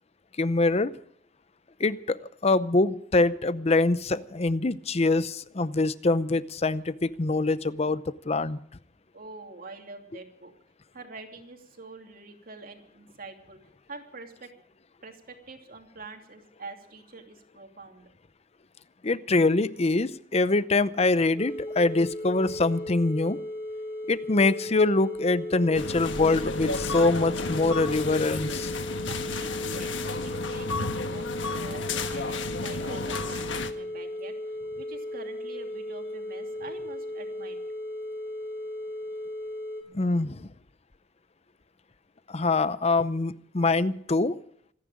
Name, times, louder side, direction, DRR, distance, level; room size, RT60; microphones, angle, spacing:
voice 1, 0.4-0.9 1.8-8.6 19.0-23.4 24.1-28.7 39.9-40.5 42.3-44.4, left 3 dB, 35° left, 15 dB, 0.7 m, -24 dB
voice 2, 9.1-10.5 10.9-13.6 13.9-14.5 15.0-18.1 29.0-37.6, right 3 dB, 50° right, 3 dB, 2.8 m, -45 dB
sound 1, 21.4-39.8, left 1 dB, 15° left, 5.7 m, -36 dB
sound 2, 25.7-33.7, left 3 dB, 85° left, 1.5 m, -32 dB
26.5 x 10.0 x 5.0 m, 0.65 s
head